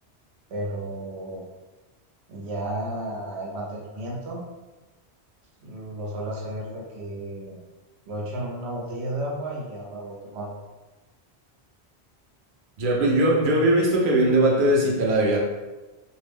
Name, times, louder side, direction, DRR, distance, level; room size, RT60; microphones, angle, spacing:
voice 1, 0.5-1.5 2.3-4.4 5.6-7.6 8.1-10.6, right 1 dB, 90° right, -3 dB, 1.0 m, -33 dB
voice 2, 12.8-15.4, right 1 dB, 60° right, -2 dB, 0.7 m, -20 dB
2.5 x 2.1 x 3.3 m, 1.2 s
omnidirectional pair, 1.1 m